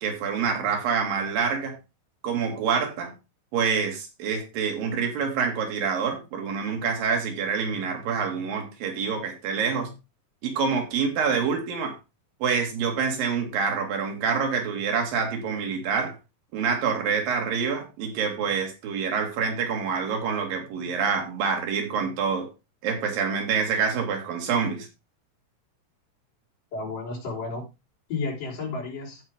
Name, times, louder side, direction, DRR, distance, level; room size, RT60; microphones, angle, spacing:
voice 1, 0.0-1.8 2.2-3.1 3.5-9.9 10.4-12.0 12.4-16.2 16.5-22.5 22.8-24.9, right 6 dB, 85° right, 3.8 m, -26 dB
voice 2, 26.7-27.6 28.1-29.2, left 3 dB, 70° left, 5.8 m, -32 dB
15.0 x 5.1 x 3.5 m
omnidirectional pair, 3.9 m